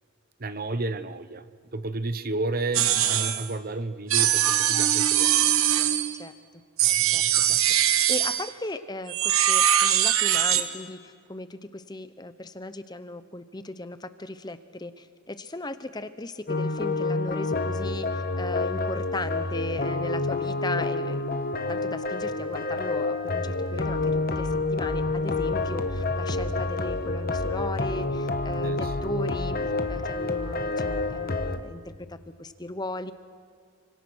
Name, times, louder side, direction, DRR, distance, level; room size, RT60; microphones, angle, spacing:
voice 1, 0.4-1.4 1.7-5.5 28.6-28.9, right 2 dB, 40° right, 12 dB, 0.9 m, -32 dB
sound 1, 2.7-3.5 4.1-6.2 6.8-8.5 9.1-10.7, right 11 dB, 75° right, 1.2 m, -22 dB
voice 2, 7.1-7.6 8.1-21.2 21.7-31.8 32.1-33.1, left 2 dB, 20° left, 12 dB, 0.8 m, -37 dB
sound 2, 16.5-31.6, left 2 dB, 45° left, 1.2 m, -28 dB
29.0 x 25.5 x 6.3 m, 2.1 s
head